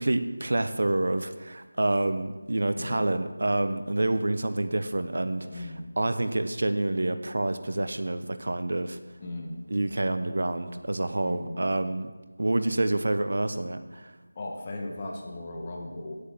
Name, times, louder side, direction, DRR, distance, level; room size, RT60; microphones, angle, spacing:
voice 1, 0.0-9.0 9.7-12.1 12.4-14.1, right 2 dB, 65° right, 10 dB, 0.9 m, -28 dB
voice 2, 2.7-3.2 5.4-5.9 9.2-9.6 11.2-11.6 14.4-16.2, left 2 dB, 30° left, 1 dB, 1.8 m, -37 dB
9.7 x 8.4 x 7.6 m, 1.2 s
figure-of-eight pair, 170°, 0 cm